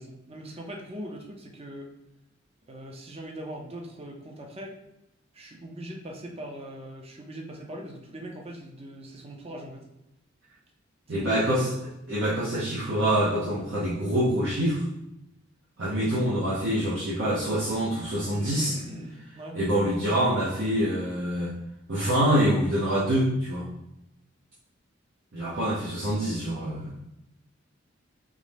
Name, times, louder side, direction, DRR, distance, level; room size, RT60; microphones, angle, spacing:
voice 1, 0.0-1.9 2.7-4.8 5.3-9.8 11.1-11.6 18.4-19.6, right 1 dB, 30° right, 0 dB, 0.6 m, -41 dB
voice 2, 11.1-14.8 15.8-18.8 19.5-21.5 21.9-23.7 25.3-26.9, right 1 dB, 65° right, -8 dB, 0.9 m, -25 dB
3.8 x 3.1 x 3.3 m, 0.89 s
head